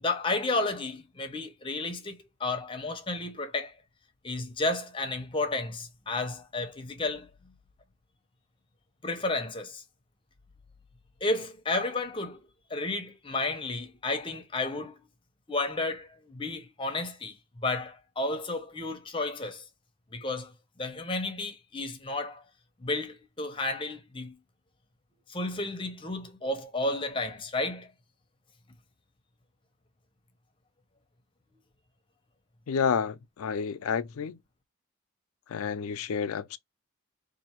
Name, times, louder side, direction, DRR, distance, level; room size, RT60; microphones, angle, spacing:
voice 1, 0.0-3.7 4.2-7.3 9.0-9.8 11.2-12.4 12.7-15.0 15.5-17.3 17.6-19.6 20.1-20.5 20.8-22.4 22.8-24.3 25.3-27.9, left 2 dB, 25° left, 0.7 m, -32 dB
voice 2, 32.7-34.4 35.5-36.6, left 6 dB, 80° left, 0.4 m, -30 dB
3.9 x 2.6 x 2.9 m
head